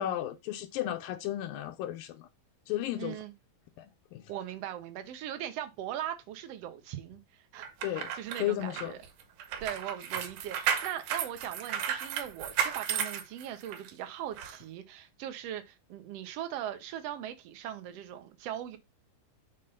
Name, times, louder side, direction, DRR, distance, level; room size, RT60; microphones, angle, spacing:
voice 1, 0.0-2.3 2.7-3.2 3.8-4.3 7.8-8.1 8.4-8.9, left 13 dB, 85° left, 2.4 m, -34 dB
voice 2, 3.0-3.3 4.3-9.0 9.6-18.8, right 11 dB, 70° right, 1.5 m, -40 dB
sound 1, 7.6-13.9 14.4-14.5, right 8 dB, 85° right, 2.7 m, -33 dB
6.7 x 3.7 x 5.4 m
omnidirectional pair, 4.1 m